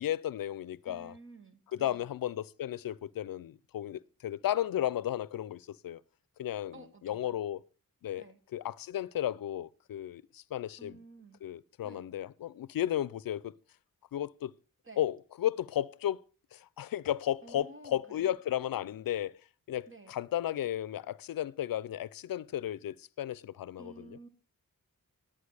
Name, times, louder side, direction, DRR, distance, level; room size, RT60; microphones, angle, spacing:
voice 1, 0.0-1.1 1.7-6.0 6.4-7.6 8.0-8.2 8.5-11.0 11.4-13.5 14.1-14.5 15.0-16.2 16.5-19.3 19.7-24.1, left 11 dB, 85° left, 0.5 m, -34 dB
voice 2, 0.9-2.1 6.7-7.4 8.2-8.4 10.8-11.4 11.8-12.1 14.8-15.0 17.4-18.4 19.9-20.2 23.8-24.3, right 2 dB, 35° right, 1.7 m, -52 dB
11.5 x 8.8 x 4.9 m
wide cardioid pair, 75°, 34 cm